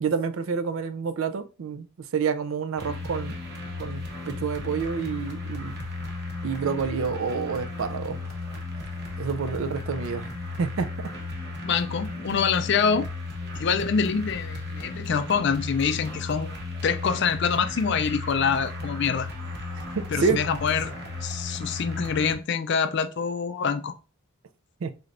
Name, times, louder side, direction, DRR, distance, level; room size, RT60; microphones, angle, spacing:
voice 1, 0.0-1.9 2.1-3.4 3.8-4.0 4.3-5.8 6.4-8.2 9.2-10.3 10.6-10.9 20.0-20.4 24.8-24.9, right 5 dB, 70° right, 0.4 m, -28 dB
sound 1, 2.8-22.4, left 2 dB, 50° right, 1.0 m, -35 dB
voice 2, 11.6-13.1 13.5-16.5 16.8-19.3 20.1-20.9 21.2-23.9, left 6 dB, 55° left, 0.4 m, -25 dB
3.8 x 3.2 x 2.5 m
head